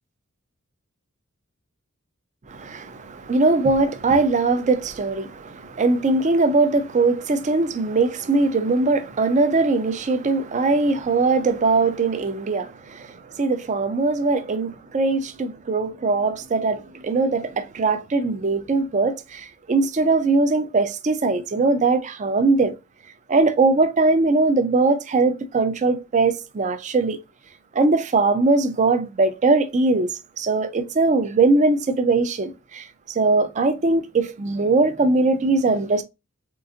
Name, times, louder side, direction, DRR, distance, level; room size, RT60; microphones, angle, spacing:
voice 1, 2.5-22.8 23.3-27.2 27.7-36.0, right 3 dB, 35° right, 0.4 m, -21 dB
3.8 x 2.4 x 2.5 m
head